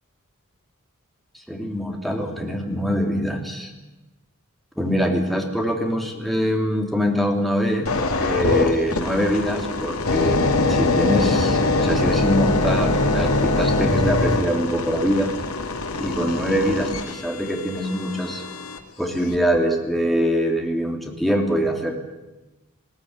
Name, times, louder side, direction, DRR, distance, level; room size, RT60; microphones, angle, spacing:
voice 1, 1.5-3.7 4.8-15.3 16.0-18.4 19.0-22.0, equal, ahead, 2 dB, 3.4 m, -24 dB
sound 1, 7.8-18.8 19.3-19.6, left 2 dB, 90° left, 2.4 m, -23 dB
21.0 x 17.5 x 9.7 m, 1.0 s
head